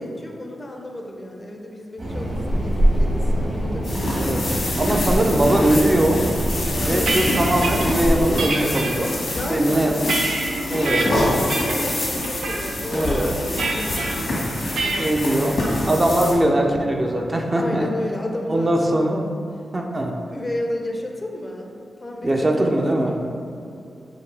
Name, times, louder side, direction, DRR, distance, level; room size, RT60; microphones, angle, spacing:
voice 1, 0.0-4.3 6.9-7.3 9.3-10.4 10.7-15.4 16.4-16.8 17.5-19.1 20.3-23.3, left 1 dB, 35° left, 1 dB, 0.6 m, -32 dB
sound 1, 2.0-8.4, equal, 50° right, 1.1 m, -24 dB
sound 2, 3.8-16.3, left 1 dB, 70° left, 1.3 m, -26 dB
voice 2, 4.8-6.2 6.8-9.1 9.5-10.1 10.7-11.0 12.9-13.3 15.0-15.6 15.9-17.9 18.5-19.2 19.7-20.1 22.2-23.2, right 1 dB, 30° right, 1 dB, 0.5 m, -21 dB
sound 3, 6.7-7.9 8.4-8.9 9.5-11.0 11.5-11.9 12.2-12.6 13.6-14.1 14.7-15.1, right 3 dB, 80° right, 0.5 m, -26 dB
4.9 x 2.7 x 3.3 m, 2.6 s
cardioid pair, 55°, 0 cm